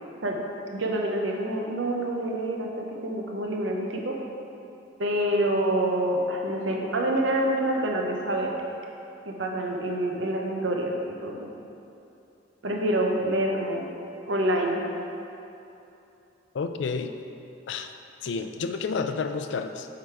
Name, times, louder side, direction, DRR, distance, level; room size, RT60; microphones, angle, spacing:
voice 1, 0.7-2.7 3.0-4.2 5.0-8.5 9.2-11.5 12.6-13.8 14.2-14.8, right 1 dB, 80° right, 1 dB, 0.8 m, -27 dB
voice 2, 16.5-17.1 17.7-17.9 18.2-19.9, left 5 dB, 70° left, 7 dB, 0.4 m, -30 dB
7.7 x 3.9 x 4.6 m, 2.8 s
head